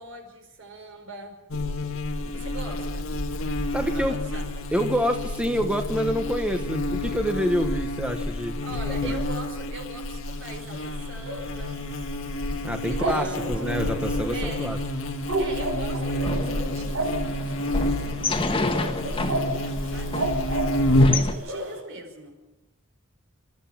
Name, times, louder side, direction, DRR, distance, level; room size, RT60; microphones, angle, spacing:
voice 1, 0.0-1.4 2.2-3.2 3.7-4.7 8.6-11.9 12.8-13.6 14.3-14.8 15.4-20.3 21.0-22.4, right 1 dB, 70° right, 4 dB, 5.3 m, -41 dB
Buzz, 1.5-21.3, left 1 dB, 90° left, 1.8 m, -28 dB
voice 2, 3.7-4.2 4.7-8.6 8.9-9.2 12.6-14.8, equal, 5° right, 5 dB, 1.3 m, -27 dB
sound 1, 10.2-21.8, right 1 dB, 85° right, 6.7 m, -33 dB
sound 2, 16.2-21.3, left 3 dB, 25° left, 1.6 m, -31 dB
29.0 x 14.0 x 7.4 m, 1.1 s
head